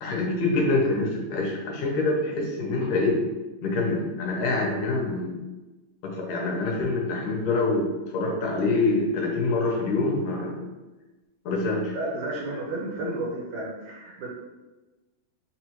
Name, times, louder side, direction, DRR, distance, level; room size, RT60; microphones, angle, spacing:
voice 1, 0.0-3.2 3.6-5.4 6.0-10.7 11.5-12.0, left 2 dB, 75° left, -1 dB, 2.0 m, -25 dB
voice 2, 11.9-14.3, right 2 dB, 75° right, -3 dB, 1.8 m, -32 dB
5.5 x 2.2 x 2.9 m, 1.1 s
omnidirectional pair, 3.8 m